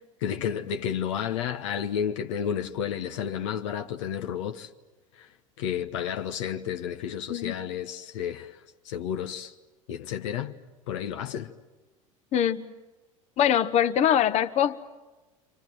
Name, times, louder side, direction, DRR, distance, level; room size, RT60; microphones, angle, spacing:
voice 1, 0.2-4.7 5.2-5.3 5.6-9.5 9.9-10.6 10.9-11.5, left 8 dB, 65° left, 1.3 m, -31 dB
voice 2, 12.3-12.6 13.4-14.8, left 10 dB, 40° left, 1.3 m, -23 dB
30.0 x 25.5 x 7.8 m
figure-of-eight pair, 75°, 17 cm